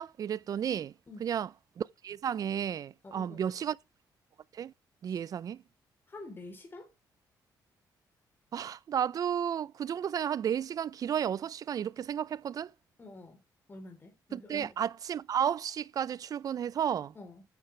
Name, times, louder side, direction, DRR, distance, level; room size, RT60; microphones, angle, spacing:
voice 1, 0.0-0.9 1.2-1.5 1.8-3.8 4.5-4.7 5.0-5.6 8.5-12.7 14.3-17.1, right 9 dB, 50° right, 0.4 m, -32 dB
voice 2, 3.0-3.4 5.1-5.2 6.1-6.9 13.0-13.4 13.7-14.8 17.2-17.4, left 2 dB, 30° left, 3.6 m, -47 dB
9.9 x 8.9 x 3.3 m
cardioid pair, 105°, 8 cm